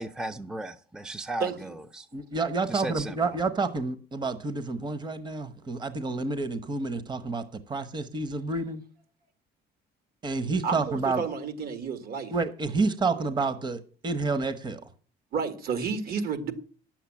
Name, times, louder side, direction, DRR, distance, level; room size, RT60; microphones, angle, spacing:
voice 1, 0.0-2.1 2.7-3.3, right 2 dB, 5° right, 0.6 m, -36 dB
voice 2, 1.4-1.7 10.6-12.3 15.3-16.5, right 6 dB, 65° right, 1.9 m, -31 dB
voice 3, 2.1-8.8 10.2-11.2 12.3-14.8, right 3 dB, 25° right, 1.0 m, -29 dB
9.9 x 7.4 x 7.2 m
cardioid pair, 110°, 17 cm